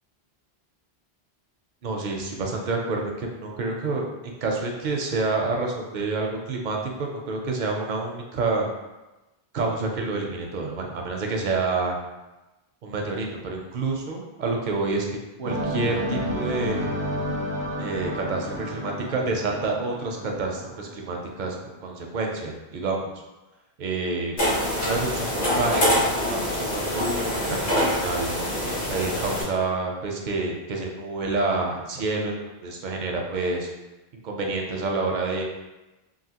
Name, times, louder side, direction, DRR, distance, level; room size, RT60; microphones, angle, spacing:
voice 1, 1.8-8.7 9.5-12.0 12.8-16.9 17.8-23.1 23.8-24.3 24.8-28.3 28.9-32.3 32.6-33.7 34.1-35.4, right 3 dB, 60° right, 1 dB, 0.5 m, -28 dB
sound 1, 15.4-21.4, equal, 85° right, 0.8 m, -31 dB
sound 2, 24.4-29.4, left 1 dB, 50° left, 1.2 m, -25 dB
3.2 x 2.5 x 2.8 m, 1.1 s
omnidirectional pair, 1.1 m